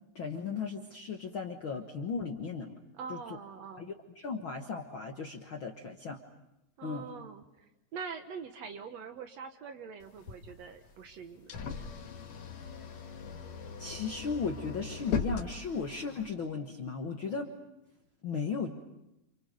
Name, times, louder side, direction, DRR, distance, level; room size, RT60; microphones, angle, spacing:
voice 1, 0.1-2.8 3.1-3.4 3.8-6.2 6.8-7.1 13.8-17.5 18.2-18.7, left 5 dB, 70° left, 3 dB, 1.2 m, -36 dB
voice 2, 2.9-3.9 6.8-7.7 7.9-11.6, right 6 dB, 65° right, 7 dB, 1.9 m, -44 dB
sound 1, 10.0-16.3, left 6 dB, 55° left, 2.7 m, -39 dB
29.5 x 28.5 x 5.3 m, 0.90 s
omnidirectional pair, 4.3 m